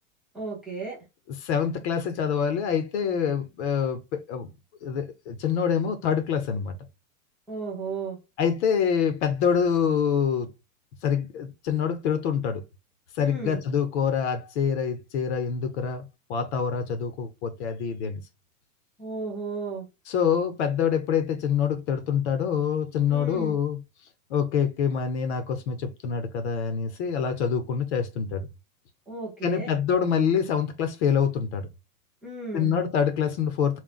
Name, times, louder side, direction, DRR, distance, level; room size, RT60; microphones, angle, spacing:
voice 1, 0.3-1.0 7.5-8.2 13.2-13.6 19.0-19.9 23.1-23.6 29.1-29.7 32.2-32.8, right 4 dB, ahead, 0.3 m, -34 dB
voice 2, 1.3-4.5 4.8-6.7 8.4-10.5 11.0-12.6 13.1-18.2 20.1-23.8 24.3-28.5 29.4-31.7 32.5-33.8, left 7 dB, 50° left, 0.7 m, -26 dB
3.9 x 2.1 x 2.3 m
supercardioid pair, 165°, 42 cm